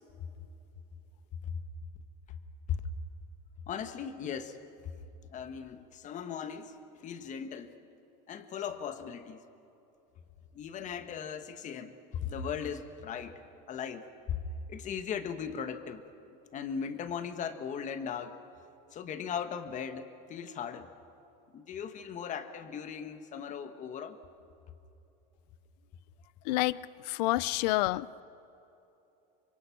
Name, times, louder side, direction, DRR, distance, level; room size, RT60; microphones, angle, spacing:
voice 1, 3.7-4.6 5.3-6.7 7.0-7.7 8.3-9.4 10.5-14.4 14.7-16.0 16.5-18.4 18.9-20.9 21.5-24.2, left 7 dB, 35° left, 9 dB, 1.4 m, -38 dB
voice 2, 26.5-28.1, left 19 dB, 80° left, 20 dB, 0.5 m, -29 dB
26.0 x 23.0 x 6.0 m, 3.0 s
supercardioid pair, 130°, 21 cm